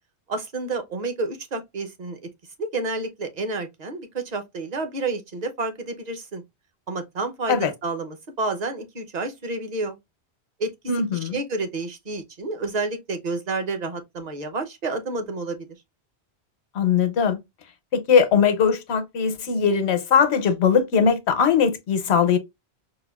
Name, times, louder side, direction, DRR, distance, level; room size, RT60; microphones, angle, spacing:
voice 1, 0.3-2.2 2.6-6.4 6.9-10.0 10.6-10.7 11.2-15.6, right 3 dB, 45° right, 0.7 m, -29 dB
voice 2, 10.9-11.4 16.7-17.4 17.9-22.4, left 6 dB, 85° left, 1.0 m, -20 dB
4.9 x 2.2 x 2.2 m
omnidirectional pair, 1.1 m